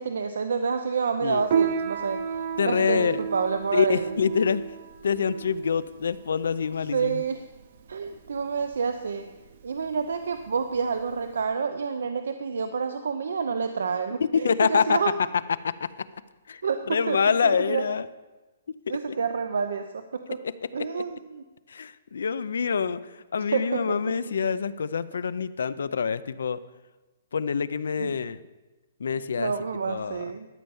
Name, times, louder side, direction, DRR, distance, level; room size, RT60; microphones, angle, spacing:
voice 1, 0.0-2.2 2.6-4.1 6.9-7.5 7.9-9.3 9.6-15.1 16.6-17.2 17.4-17.8 18.9-20.4 20.7-21.4 23.5-24.1 28.0-28.1 29.3-30.5, right 5 dB, 80° right, 8 dB, 0.6 m, -28 dB
Piano, 1.5-11.4, right 7 dB, 40° right, 0.7 m, -32 dB
voice 2, 2.6-3.2 3.7-4.6 5.0-7.2 14.2-15.0 15.6-16.0 16.5-16.6 16.9-18.1 18.7-18.8 19.1-19.2 20.8-21.0 21.7-23.0 23.3-26.6 27.3-28.4 29.0-29.5 29.9-30.2, left 6 dB, 70° left, 16 dB, 0.5 m, -26 dB
12.5 x 5.5 x 7.1 m, 1.2 s
hypercardioid pair, 180°, 0 cm